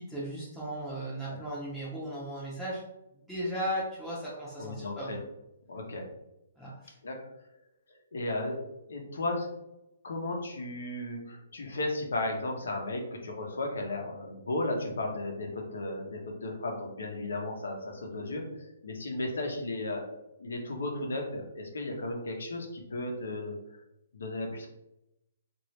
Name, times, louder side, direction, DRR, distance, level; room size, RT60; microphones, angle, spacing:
voice 1, 0.0-2.8 3.3-5.2 6.6-6.9, equal, ahead, -10 dB, 0.6 m, -36 dB
voice 2, 4.6-5.2 5.7-6.0 7.0-7.3 8.1-8.6 8.9-9.5 10.0-23.5 24.1-24.7, left 2 dB, 90° left, 2 dB, 0.8 m, -35 dB
3.0 x 2.6 x 3.1 m, 0.87 s
hypercardioid pair, 165°, 0 cm